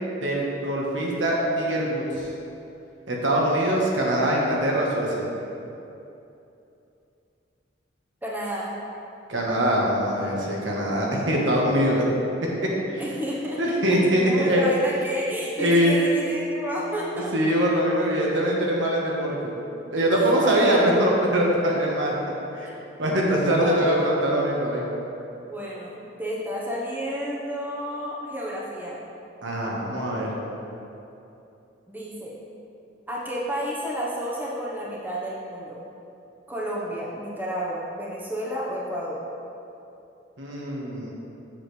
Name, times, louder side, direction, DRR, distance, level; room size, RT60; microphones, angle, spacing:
voice 1, 0.2-2.3 3.1-5.3 9.3-12.0 12.6-13.0 13.6-14.6 15.6-16.0 17.3-19.5 19.9-22.1 22.5-22.7 23.0-24.8 29.4-30.3 40.4-41.1, right 1 dB, 85° right, -3 dB, 1.3 m, -23 dB
voice 2, 8.2-8.7 13.0-13.8 14.0-17.5 20.1-20.2 20.4-20.8 23.6-24.0 25.4-29.0 31.9-32.4 33.1-35.8 36.5-39.2, equal, 10° right, -6 dB, 1.0 m, -31 dB
7.3 x 7.2 x 3.3 m, 2.8 s
head